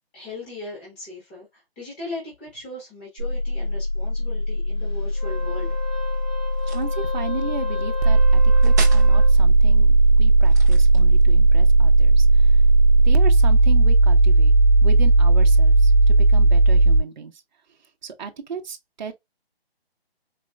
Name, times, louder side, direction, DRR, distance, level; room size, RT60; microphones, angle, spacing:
voice 1, 0.1-5.8, left 2 dB, 10° left, 1.1 m, -38 dB
sound 1, 3.2-17.0, right 2 dB, 80° right, 0.7 m, -16 dB
Wind instrument woodwind instrument, 5.1-9.4, left 5 dB, 45° left, 2.0 m, -35 dB
sound 2, 6.5-7.0 8.6-9.1 10.4-11.3, right 4 dB, 15° right, 0.6 m, -35 dB
voice 2, 6.7-12.6 13.0-14.5 14.8-17.4 18.0-19.1, right 6 dB, 45° right, 0.8 m, -35 dB
4.2 x 3.0 x 2.3 m
hypercardioid pair, 165°, 31 cm